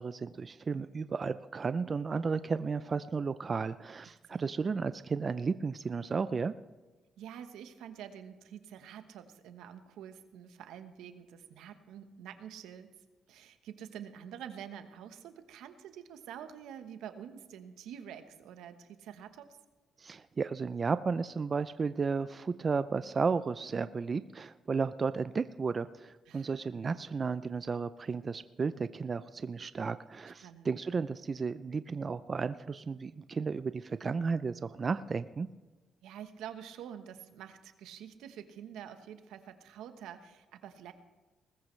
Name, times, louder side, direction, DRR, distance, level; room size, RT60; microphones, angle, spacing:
voice 1, 0.0-6.5 20.0-35.5, right 5 dB, 35° right, 13 dB, 0.4 m, -33 dB
voice 2, 4.1-4.5 7.2-12.9 13.3-19.6 26.3-26.9 30.4-30.7 36.0-40.9, right 9 dB, 85° right, 9 dB, 1.1 m, -47 dB
19.5 x 14.0 x 3.2 m, 1.2 s
cardioid pair, 90°, 0 cm